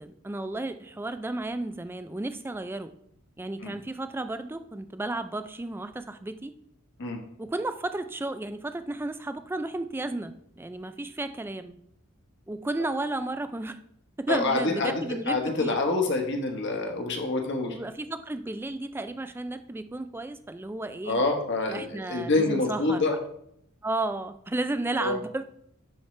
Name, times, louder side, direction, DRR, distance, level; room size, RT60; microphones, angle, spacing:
voice 1, 0.0-2.9 3.4-6.5 7.4-11.8 12.5-13.8 14.2-15.7 17.6-21.2 21.7-23.0 23.8-25.4, right 2 dB, 10° right, 10 dB, 0.3 m, -33 dB
voice 2, 14.3-17.8 21.1-23.2 25.0-25.2, left 2 dB, 55° left, 2 dB, 1.3 m, -27 dB
11.5 x 4.5 x 3.2 m, 0.73 s
head